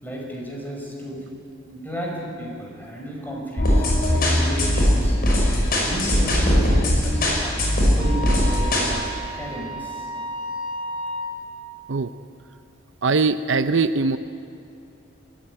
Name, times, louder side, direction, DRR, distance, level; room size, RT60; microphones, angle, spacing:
voice 1, 0.0-1.3 1.7-5.2 5.7-10.1, right 1 dB, 10° left, -2 dB, 5.6 m, -33 dB
sound 1, 3.6-8.9, left 1 dB, 50° left, 5.7 m, -20 dB
Wind instrument woodwind instrument, 7.0-11.3, equal, 25° right, 3.0 m, -33 dB
voice 2, 13.0-14.2, right 4 dB, 65° right, 11 dB, 0.6 m, -21 dB
25.5 x 14.0 x 9.6 m, 2.7 s
head